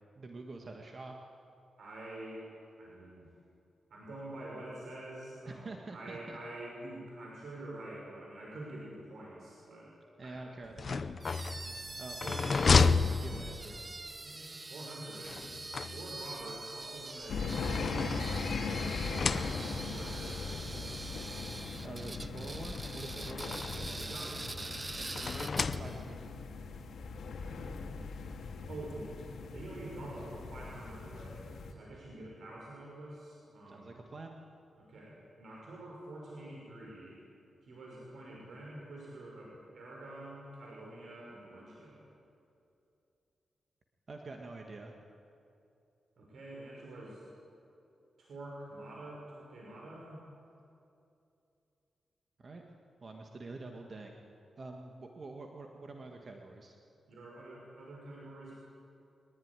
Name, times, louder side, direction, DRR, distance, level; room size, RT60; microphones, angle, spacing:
voice 1, 0.1-1.2 5.4-6.4 10.2-11.0 12.0-13.8 21.6-23.6 24.9-25.0 25.3-26.2 33.7-34.4 44.1-44.9 52.4-52.6 53.0-54.2 54.6-56.8, right 3 dB, 35° right, 2 dB, 1.7 m, -46 dB
voice 2, 1.8-2.5 2.8-3.3 3.9-9.9 10.2-10.5 11.4-11.9 13.2-13.5 14.2-15.4 15.8-21.1 23.1-23.3 23.7-24.9 27.1-27.7 28.7-29.1 29.5-31.4 31.7-34.0 34.8-37.2 37.6-42.1 46.2-47.2 48.2-50.2 57.1-58.6, right 1 dB, 65° right, -3 dB, 5.9 m, -47 dB
sound 1, 10.7-14.0 15.2-16.4 17.2-18.6 19.0-20.0 20.9-21.0 21.3-21.4 22.6-23.9 25.2-26.3, left 4 dB, 40° left, 0.7 m, -32 dB
sound 2, 11.2-26.0, right 2 dB, 20° right, 0.8 m, -44 dB
sound 3, 17.3-31.7, left 4 dB, 80° left, 2.3 m, -39 dB
23.0 x 20.5 x 9.8 m, 2.7 s
wide cardioid pair, 165°, 0 cm